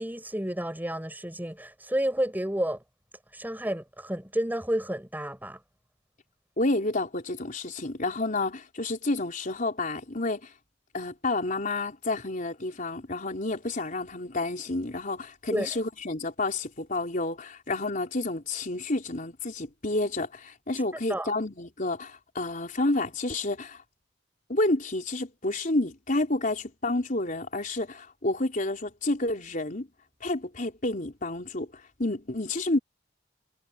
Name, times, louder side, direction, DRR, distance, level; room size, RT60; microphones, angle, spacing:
voice 1, 0.0-2.8 3.3-5.6 15.5-15.7 21.1-21.3, right 1 dB, 10° right, 5.4 m, -30 dB
voice 2, 6.6-10.5 10.9-23.8 24.5-29.9 30.2-31.7 32.0-32.8, left 2 dB, 45° left, 4.0 m, -30 dB
head